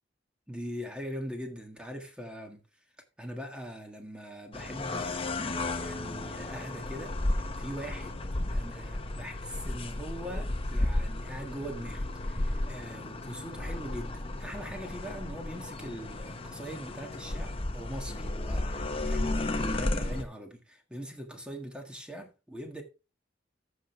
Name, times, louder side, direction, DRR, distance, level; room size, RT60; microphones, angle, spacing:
voice 1, 0.5-2.6 3.2-5.3 5.8-8.2 8.5-22.8, equal, 5° right, 1.7 m, -42 dB
sound 1, 4.5-20.2, left 2 dB, 30° left, 0.9 m, -33 dB
14.0 x 6.2 x 3.3 m
head